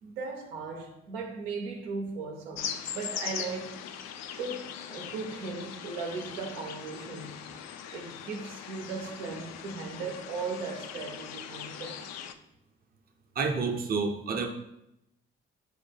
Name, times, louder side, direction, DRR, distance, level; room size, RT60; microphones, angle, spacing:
voice 1, 0.0-3.8 4.4-7.4 7.9-12.1, right 4 dB, 80° right, 0.6 m, -37 dB
sound 1, 2.6-12.3, left 8 dB, 55° left, 0.4 m, -40 dB
voice 2, 13.4-14.5, right 4 dB, 30° right, 0.6 m, -29 dB
4.7 x 2.1 x 3.3 m
figure-of-eight pair, 45°, 32 cm